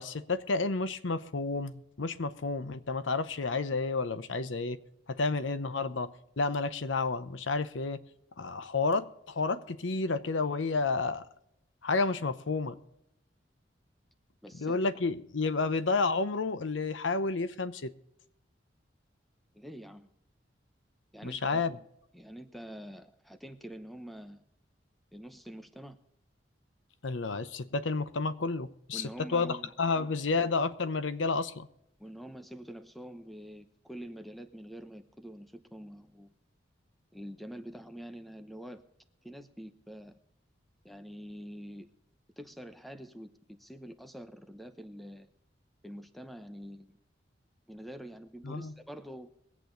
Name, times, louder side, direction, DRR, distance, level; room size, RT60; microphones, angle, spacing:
voice 1, 0.0-4.8 5.1-8.0 8.4-11.3 11.8-12.8 14.6-17.9 21.2-21.8 27.0-31.7 48.4-48.7, left 3 dB, 85° left, 0.8 m, -31 dB
voice 2, 14.4-14.8 19.5-20.1 21.1-21.7 22.1-24.4 25.1-26.0 28.9-29.7 32.0-36.3 37.1-38.8 39.2-40.1 40.8-41.9 42.4-45.3 45.8-47.0 47.7-49.3, equal, ahead, 0.8 m, -46 dB
22.5 x 8.5 x 3.9 m
head